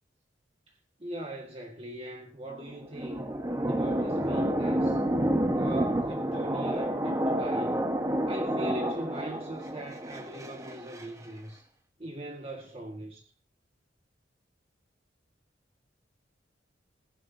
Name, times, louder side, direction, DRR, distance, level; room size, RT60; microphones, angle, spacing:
voice 1, 1.0-3.3 3.7-5.0 5.6-7.8 8.3-11.6 12.0-13.2, right 1 dB, 35° right, 1.7 m, -40 dB
sound 1, 2.5-11.0, right 1 dB, 20° right, 1.2 m, -29 dB
16.5 x 11.5 x 2.8 m
head